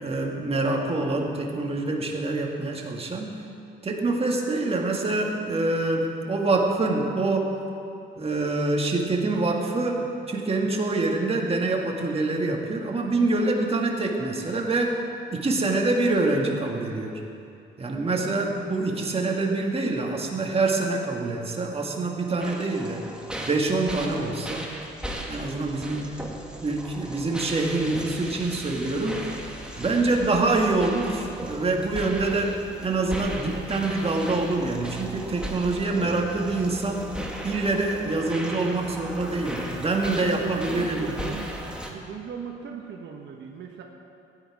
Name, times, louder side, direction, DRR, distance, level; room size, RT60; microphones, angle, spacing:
voice 1, 0.0-3.4 3.8-7.5 8.2-15.0 15.3-17.2 17.8-23.0 23.4-24.7 25.3-26.1 26.6-29.2 29.8-37.1 37.4-41.1, right 2 dB, 30° right, 0 dB, 1.9 m, -25 dB
sound 1, 22.4-41.9, equal, 5° right, 1.7 m, -37 dB
voice 2, 25.7-26.1 40.0-41.6 41.8-43.8, right 6 dB, 65° right, 1 dB, 1.2 m, -38 dB
15.5 x 10.0 x 4.9 m, 2.6 s
cardioid pair, 90°, 20 cm